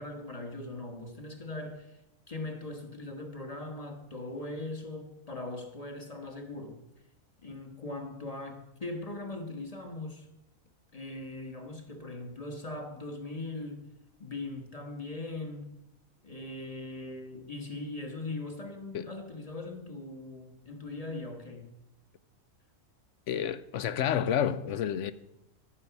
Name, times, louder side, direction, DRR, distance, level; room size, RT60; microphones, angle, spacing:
voice 1, 0.0-2.0 2.3-6.8 7.4-10.3 10.9-13.9 14.2-15.8 16.2-21.7, left 2 dB, 30° left, 1.3 m, -40 dB
voice 2, 23.3-25.1, left 9 dB, 70° left, 0.9 m, -29 dB
13.5 x 6.7 x 5.8 m
omnidirectional pair, 1.5 m